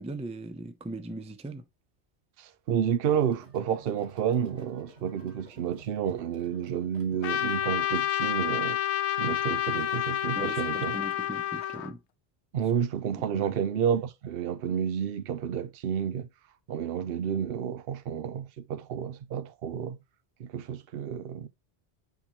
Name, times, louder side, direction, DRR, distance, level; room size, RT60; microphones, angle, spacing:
voice 1, 0.0-1.6 10.3-12.0 13.2-13.6, right 2 dB, 10° right, 0.4 m, -39 dB
voice 2, 2.4-8.8 9.2-11.0 12.5-16.3 16.7-20.0 20.4-21.5, right 8 dB, 65° right, 0.8 m, -30 dB
sound 1, 3.1-8.1, right 3 dB, 85° right, 2.1 m, -53 dB
Trumpet, 7.2-11.9, left 11 dB, 90° left, 0.9 m, -29 dB
8.7 x 4.0 x 2.9 m
omnidirectional pair, 1.1 m